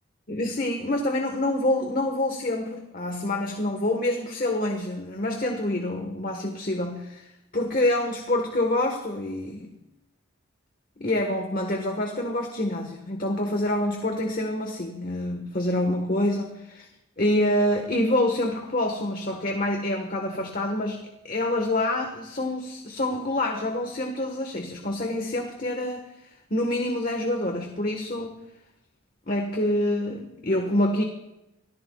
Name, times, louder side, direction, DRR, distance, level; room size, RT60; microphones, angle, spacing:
voice 1, 0.3-7.3 7.5-9.7 11.0-16.9 17.2-26.1 26.5-28.4 29.3-31.0, left 1 dB, 40° left, 3 dB, 1.4 m, -26 dB
25.0 x 17.5 x 2.4 m, 0.91 s
head